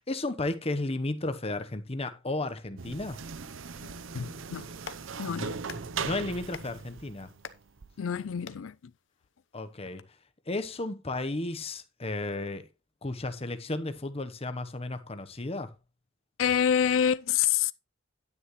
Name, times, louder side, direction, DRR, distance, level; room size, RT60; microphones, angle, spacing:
voice 1, 0.0-3.2 5.3-5.5 6.0-7.3 9.5-10.0 10.5-12.7 13.0-15.7, left 2 dB, 30° left, 1.0 m, -33 dB
sound 1, 2.8-7.9, right 5 dB, 75° right, 0.7 m, -39 dB
voice 2, 3.8-4.7 5.2-5.6 8.0-8.7 16.4-17.7, left 8 dB, 90° left, 0.4 m, -27 dB
Clapping, 4.7-10.0, left 6 dB, 65° left, 0.9 m, -50 dB
10.5 x 9.7 x 3.1 m
head